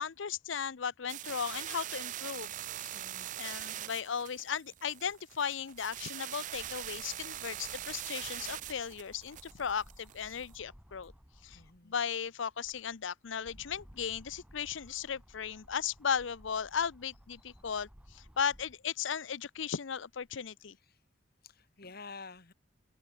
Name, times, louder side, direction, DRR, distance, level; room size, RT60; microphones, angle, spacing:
voice 1, 0.0-2.5 2.8-3.0 3.4-11.1 11.4-20.8, left 7 dB, 70° left, 0.6 m, -36 dB
sound 1, 1.1-10.5, right 13 dB, 40° right, 0.4 m, -42 dB
voice 2, 2.9-3.4 11.5-12.0 20.8-21.0 21.4-22.5, left 4 dB, 50° left, 2.6 m, -50 dB
sound 2, 4.2-11.9 12.4-18.9 19.4-20.5, equal, 5° right, 2.3 m, -59 dB
open air
head